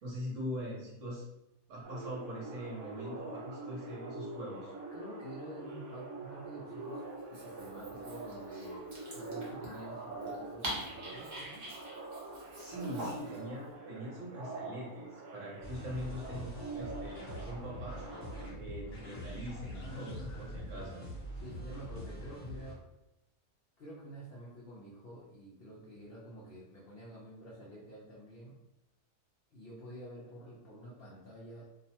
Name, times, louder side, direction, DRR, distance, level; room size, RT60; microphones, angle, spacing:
voice 1, 0.0-1.2 1.7-4.7 12.5-18.0 18.6-21.0, equal, 60° right, -5 dB, 1.1 m, -42 dB
sound 1, 1.8-18.5, right 3 dB, 75° right, 1.1 m, -45 dB
voice 2, 4.9-7.0 7.3-11.7 18.3-18.6 19.7-21.0 21.3-22.8 23.8-28.6 29.5-31.6, right 1 dB, 65° left, -7 dB, 0.5 m, -49 dB
Dog, 7.2-13.4, right 1 dB, 40° right, 0.7 m, -45 dB
sound 2, 15.6-22.7, equal, 40° left, 1.0 m, -44 dB
2.7 x 2.1 x 2.7 m, 0.89 s
omnidirectional pair, 1.6 m